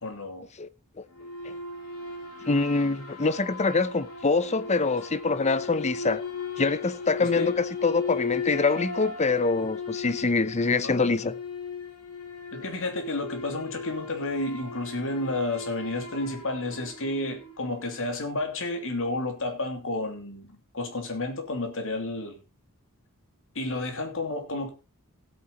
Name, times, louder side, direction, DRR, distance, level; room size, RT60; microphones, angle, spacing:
voice 1, 0.0-0.5 7.2-7.5 10.8-11.3 12.5-22.4 23.5-24.7, left 2 dB, 60° left, 2.9 m, -31 dB
sound 1, 1.1-17.7, left 5 dB, 80° left, 3.9 m, -37 dB
voice 2, 2.4-6.2 6.6-11.3, left 3 dB, 30° left, 0.7 m, -25 dB
15.5 x 8.7 x 4.1 m
head